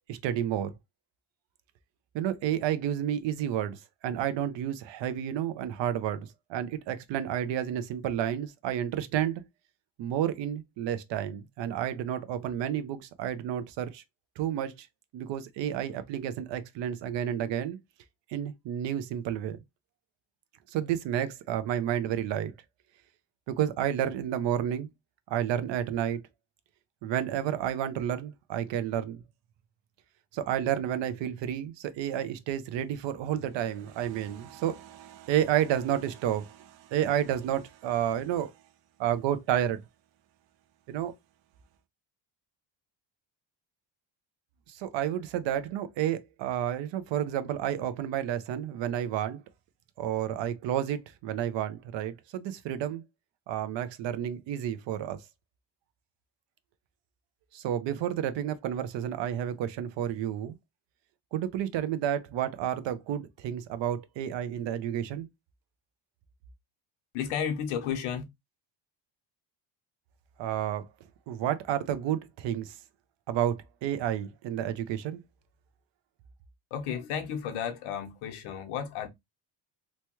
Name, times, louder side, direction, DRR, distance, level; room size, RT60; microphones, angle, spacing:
voice 1, 0.1-0.7 2.1-9.4 10.0-14.0 14.4-14.9 15.1-17.8 18.3-19.6 20.7-22.5 23.5-24.9 25.3-26.2 27.0-29.2 30.3-38.5 39.0-39.8 40.9-41.1 44.7-49.4 50.0-53.0 53.5-55.2 57.5-60.6 61.3-65.3 70.4-70.9 71.3-72.7 73.3-75.2, right 10 dB, 65° right, 0.6 m, -31 dB
voice 2, 67.1-68.2 76.7-79.1, left 8 dB, 85° left, 0.9 m, -33 dB
3.0 x 2.2 x 2.9 m
cardioid pair, 130°, 48 cm